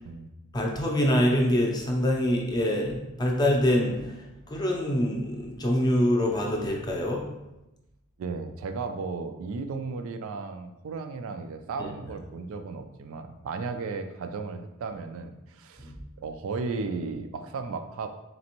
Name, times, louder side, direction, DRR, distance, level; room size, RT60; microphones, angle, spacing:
voice 1, 0.5-7.2 11.8-11.9 15.8-16.0, left 1 dB, 20° left, -1 dB, 0.6 m, -25 dB
voice 2, 8.2-18.1, right 4 dB, 65° right, 7 dB, 0.3 m, -35 dB
4.0 x 3.3 x 2.9 m, 0.97 s
head